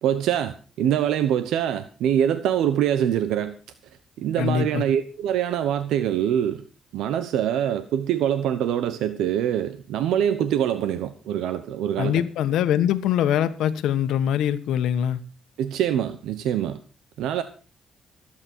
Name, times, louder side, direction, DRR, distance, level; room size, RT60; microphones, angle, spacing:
voice 1, 0.0-3.6 4.2-6.6 6.9-12.2 15.6-16.8 17.2-17.4, right 10 dB, 85° right, 0.9 m, -24 dB
voice 2, 4.4-4.8 12.0-15.2, left 10 dB, 85° left, 1.3 m, -23 dB
23.0 x 8.8 x 4.6 m
cardioid pair, 90°, 0 cm